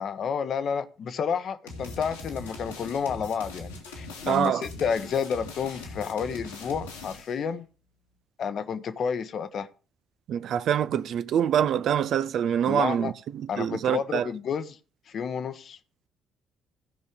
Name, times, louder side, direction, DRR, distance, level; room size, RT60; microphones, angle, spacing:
voice 1, 0.0-7.6 8.4-9.7 12.7-13.1 13.5-14.8 15.1-15.8, left 6 dB, 55° left, 0.9 m, -30 dB
sound 1, 1.7-7.4, left 3 dB, 85° left, 2.2 m, -41 dB
voice 2, 4.3-4.7 10.3-14.3, right 9 dB, 60° right, 0.5 m, -25 dB
15.5 x 5.4 x 5.0 m
figure-of-eight pair, 45°, 0 cm